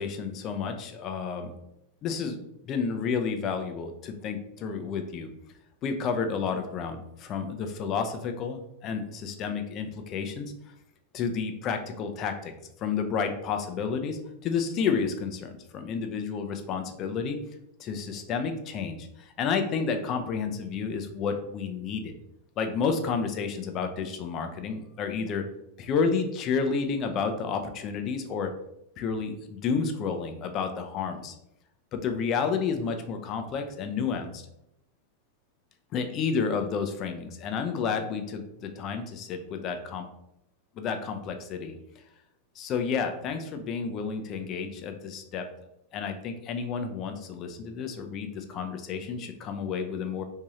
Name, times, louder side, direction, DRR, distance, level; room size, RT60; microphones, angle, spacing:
voice 1, 0.0-1.5 2.0-5.3 5.8-10.5 11.1-12.5 12.8-17.4 17.8-22.1 22.6-25.4 25.8-28.5 29.0-31.3 31.9-34.5 35.9-40.0 40.8-41.8 42.6-45.5 45.9-50.2, left 5 dB, 35° left, 6 dB, 0.5 m, -31 dB
3.5 x 2.7 x 3.1 m, 0.80 s
figure-of-eight pair, 90°, 0 cm